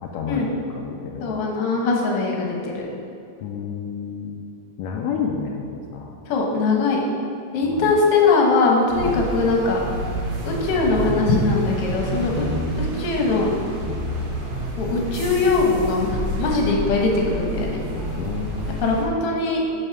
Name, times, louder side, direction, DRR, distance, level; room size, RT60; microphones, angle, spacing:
voice 1, 0.0-1.4 3.4-4.4 4.8-6.2 7.6-8.0 9.0-9.3 18.2-18.8, left 6 dB, 85° left, 0 dB, 1.6 m, -30 dB
voice 2, 1.2-2.8 6.3-7.0 7.5-9.8 10.4-12.5 12.8-13.5 14.8-17.8 18.8-19.6, left 3 dB, 60° left, -1 dB, 1.8 m, -21 dB
sound 1, 8.9-19.1, right 1 dB, 70° right, 2.8 m, -28 dB
7.9 x 4.3 x 5.9 m, 2.5 s
omnidirectional pair, 3.6 m